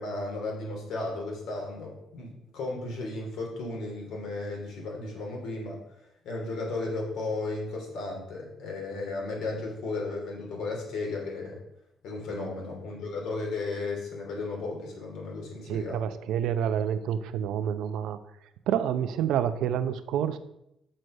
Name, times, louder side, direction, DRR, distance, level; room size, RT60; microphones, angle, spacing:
voice 1, 0.0-5.8 6.2-11.6 12.0-16.0, left 3 dB, 75° left, -1 dB, 3.0 m, -34 dB
voice 2, 15.7-18.2 18.7-20.4, right 9 dB, 80° right, 11 dB, 0.6 m, -28 dB
6.5 x 6.3 x 5.5 m, 0.81 s
cardioid pair, 145°, 0 cm